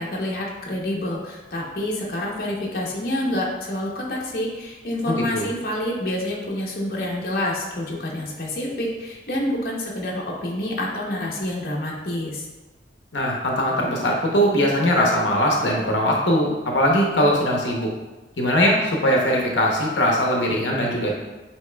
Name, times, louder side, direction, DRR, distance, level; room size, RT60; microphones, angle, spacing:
voice 1, 0.0-12.5, left 1 dB, 55° left, -3 dB, 0.8 m, -27 dB
voice 2, 5.1-5.5 13.1-17.9 18.4-21.1, equal, 80° left, -1 dB, 0.8 m, -21 dB
8.1 x 2.9 x 2.2 m, 1.2 s
head